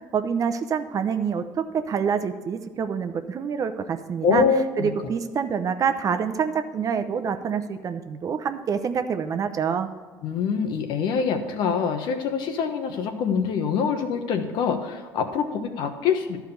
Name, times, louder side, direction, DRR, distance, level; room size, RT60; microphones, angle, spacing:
voice 1, 0.0-4.4 4.8-9.9, right 6 dB, 45° right, 9 dB, 0.7 m, -26 dB
voice 2, 4.2-4.9 10.2-16.4, left 6 dB, 70° left, 6 dB, 1.1 m, -25 dB
11.5 x 4.7 x 6.9 m, 1.4 s
supercardioid pair, 85°, 8 cm